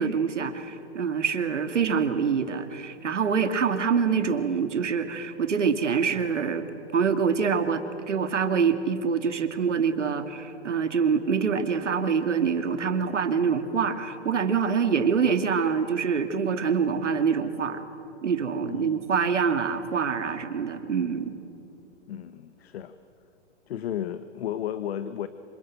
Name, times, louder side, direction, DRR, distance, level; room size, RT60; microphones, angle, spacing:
voice 1, 0.0-6.6 6.9-17.8 18.2-21.3, right 6 dB, 85° right, 8 dB, 2.5 m, -25 dB
voice 2, 18.6-19.1 22.1-23.0 23.7-25.3, left 10 dB, 60° left, 12 dB, 1.3 m, -33 dB
26.5 x 25.0 x 9.0 m, 3.0 s
hypercardioid pair, 135°, 35 cm